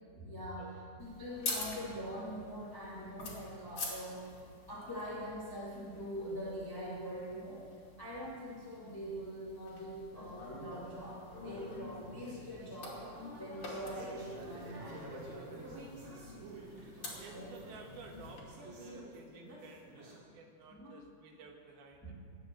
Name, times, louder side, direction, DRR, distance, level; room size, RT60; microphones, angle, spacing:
voice 1, 0.1-0.7 1.0-4.4 4.7-7.6 8.0-16.0 16.8-16.9 17.3-17.6 20.7-20.9 22.0-22.1, equal, 10° left, -7 dB, 1.7 m, -43 dB
sound 1, 1.0-18.4, left 3 dB, 40° left, 3.2 m, -47 dB
sound 2, 10.8-20.2, right 1 dB, 45° right, 3.4 m, -51 dB
voice 2, 17.2-22.1, right 4 dB, 75° right, 2 dB, 3.5 m, -53 dB
20.0 x 7.7 x 7.6 m, 2.2 s
omnidirectional pair, 4.4 m